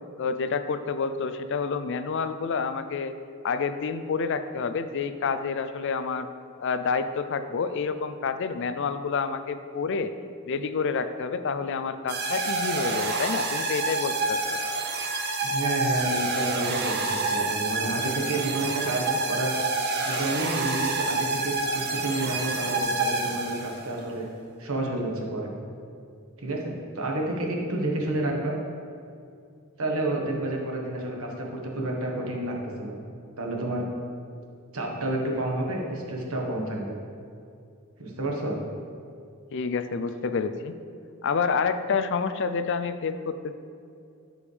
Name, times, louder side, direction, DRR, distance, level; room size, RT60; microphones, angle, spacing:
voice 1, 0.2-3.1 3.4-6.3 6.6-10.1 10.5-14.4 39.5-40.7 41.2-43.5, left 5 dB, 55° left, 10 dB, 0.4 m, -28 dB
sound 1, 12.1-23.9, right 3 dB, 45° right, 0.8 m, -28 dB
voice 2, 15.4-24.3 24.6-25.5 26.4-28.5 29.8-33.0 33.4-33.9 34.7-37.0 38.0-38.6, right 1 dB, 70° right, 0 dB, 1.4 m, -30 dB
14.0 x 5.1 x 3.4 m, 2.4 s
head